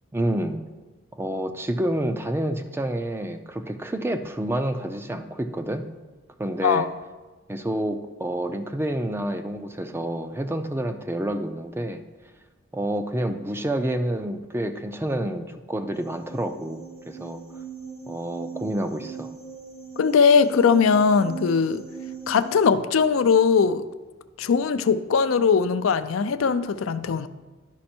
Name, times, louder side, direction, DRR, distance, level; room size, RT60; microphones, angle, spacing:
voice 1, 0.1-0.6 1.1-5.9 6.4-6.9 7.5-12.0 12.7-17.4 18.1-19.3, right 1 dB, 10° right, 8 dB, 0.4 m, -28 dB
sound 1, 15.9-22.7, right 6 dB, 45° right, 1.2 m, -40 dB
voice 2, 20.0-21.8 22.3-23.8 24.4-27.3, left 5 dB, 80° left, 11 dB, 0.4 m, -20 dB
11.5 x 5.3 x 4.3 m, 1.2 s
head